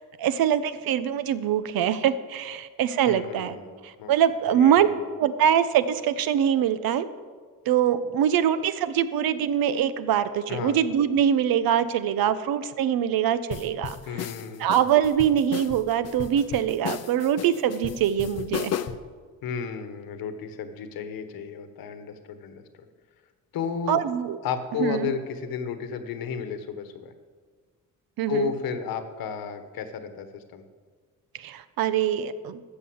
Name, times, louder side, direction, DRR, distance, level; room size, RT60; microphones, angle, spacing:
voice 1, 0.0-4.9 5.2-7.1 7.7-14.0 14.6-18.7 23.9-24.4 24.8-25.1 28.2-28.5 31.4-32.6, right 9 dB, 85° right, 13 dB, 0.8 m, -23 dB
voice 2, 3.1-3.7 4.0-4.1 4.5-5.0 10.5-10.8 14.1-14.7 19.4-22.9 23.5-24.0 24.4-27.1 28.3-30.6, left 6 dB, 85° left, 9 dB, 1.4 m, -33 dB
sound 1, 13.5-19.1, left 10 dB, 45° left, 0.6 m, -34 dB
13.0 x 6.9 x 7.9 m, 1.6 s
cardioid pair, 150°, 35 cm